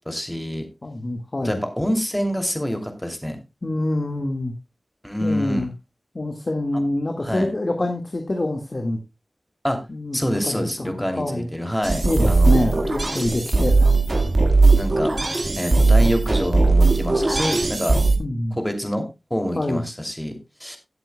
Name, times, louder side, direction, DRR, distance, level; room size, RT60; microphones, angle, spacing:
voice 1, 0.1-0.7 1.4-3.4 5.0-5.7 6.7-6.8 7.2-7.5 9.6-9.8 10.1-12.8 14.8-15.1 15.6-18.0 18.6-19.0 19.3-20.8, equal, 5° left, 5 dB, 2.7 m, -26 dB
voice 2, 0.8-1.6 3.6-4.5 5.2-5.7 6.1-9.0 9.9-10.2 10.4-10.9 11.2-11.5 12.0-13.9 18.2-18.6 19.5-19.8, left 1 dB, 45° left, 4 dB, 1.7 m, -25 dB
sound 1, 11.8-18.2, right 3 dB, 55° right, 1.7 m, -18 dB
18.0 x 7.9 x 2.2 m, 0.24 s
wide cardioid pair, 70°, 0 cm